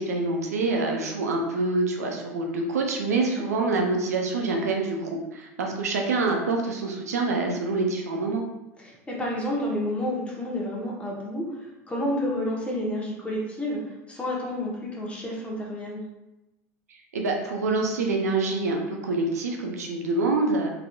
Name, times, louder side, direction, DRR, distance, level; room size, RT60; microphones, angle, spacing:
voice 1, 0.0-8.4 16.9-20.7, right 3 dB, 85° right, 2 dB, 0.6 m, -26 dB
voice 2, 8.8-16.0, left 1 dB, 15° left, -4 dB, 1.2 m, -30 dB
3.6 x 3.4 x 2.4 m, 0.95 s
hypercardioid pair, 90°, 8 cm